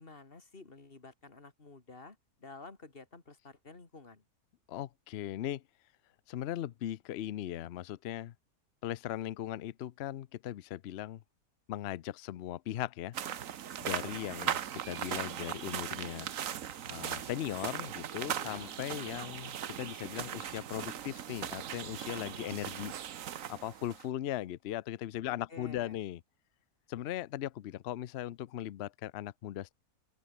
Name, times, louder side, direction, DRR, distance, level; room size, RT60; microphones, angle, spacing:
voice 1, 0.0-4.2 18.3-18.7 25.2-26.0, left 3 dB, 35° left, 2.8 m, -51 dB
voice 2, 4.7-5.6 6.3-8.3 8.8-11.2 11.7-13.2 13.8-16.3 16.9-22.9 23.5-26.2 26.9-29.7, left 12 dB, 60° left, 0.7 m, -38 dB
sound 1, 13.1-24.1, right 9 dB, 65° right, 1.3 m, -39 dB
open air
omnidirectional pair, 1.6 m